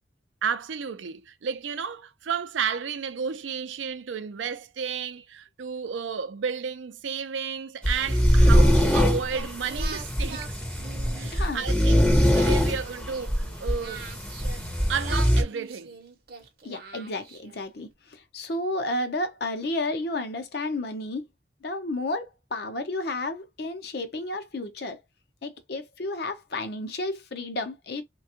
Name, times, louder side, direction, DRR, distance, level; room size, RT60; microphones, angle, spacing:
voice 1, 0.4-10.6 11.2-14.1 14.9-16.0, right 6 dB, 80° right, 0.5 m, -32 dB
sound 1, 7.8-15.4, equal, 5° left, 0.6 m, -22 dB
Singing, 8.7-11.8 12.2-14.7 15.0-17.6, right 4 dB, 50° right, 0.8 m, -42 dB
voice 2, 11.3-11.6 16.6-21.2 21.6-25.0 25.4-28.0, left 2 dB, 55° left, 0.6 m, -32 dB
3.3 x 2.2 x 2.8 m
head